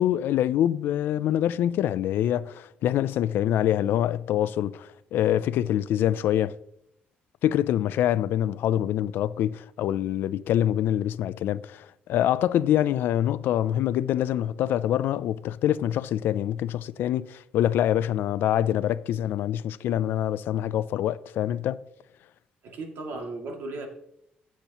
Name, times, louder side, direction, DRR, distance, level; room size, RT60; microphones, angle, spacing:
voice 1, 0.0-6.5 7.4-21.8, left 11 dB, 75° left, 0.4 m, -25 dB
voice 2, 22.6-23.9, right 2 dB, 70° right, 2.4 m, -36 dB
15.5 x 8.5 x 3.0 m
cardioid pair, 140°, 4 cm